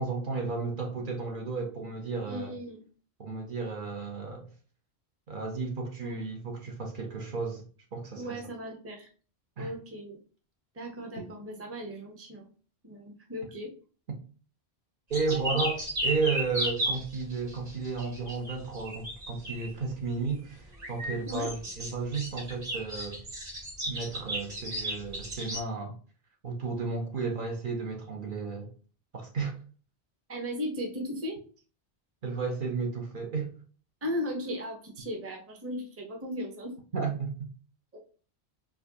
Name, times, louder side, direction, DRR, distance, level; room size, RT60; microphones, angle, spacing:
voice 1, 0.0-2.5 3.2-4.5 5.3-7.7 7.9-8.4 9.6-9.7 11.2-11.3 15.1-23.2 23.8-26.0 26.4-28.7 29.1-29.6 32.2-33.5 36.9-37.5, right 4 dB, 55° right, 0.8 m, -33 dB
voice 2, 2.3-2.8 6.0-6.2 8.2-9.1 9.6-10.2 10.7-12.5 12.8-13.7 15.3-15.6 21.3-21.5 27.2-27.3 30.3-31.4 34.0-36.7 37.9-38.0, equal, 15° right, 0.6 m, -37 dB
sound 1, 15.1-19.7 20.7-25.6, right 1 dB, 40° right, 1.4 m, -34 dB
4.5 x 2.2 x 2.7 m
omnidirectional pair, 1.1 m